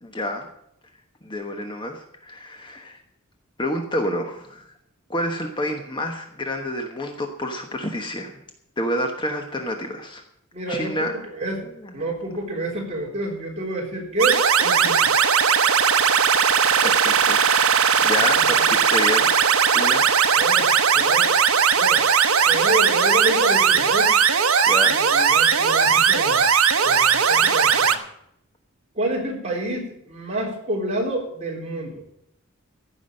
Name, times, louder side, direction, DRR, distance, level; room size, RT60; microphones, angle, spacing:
voice 1, 0.0-0.5 1.2-3.0 3.6-4.7 5.1-8.4 8.8-10.2 10.7-11.1 11.6-12.0 16.8-17.5 18.0-19.3 19.7-20.1 24.6-25.0, left 1 dB, 20° left, 4 dB, 1.1 m, -28 dB
voice 2, 10.5-11.6 11.9-15.1 18.2-18.8 20.4-20.7 20.9-21.3 21.8-22.0 22.5-24.2 24.8-26.5 26.8-28.0 28.9-32.0, right 1 dB, 30° right, -2 dB, 3.8 m, -28 dB
sound 1, 14.2-28.0, right 6 dB, 75° right, 1.0 m, -18 dB
15.0 x 6.1 x 8.8 m, 0.74 s
head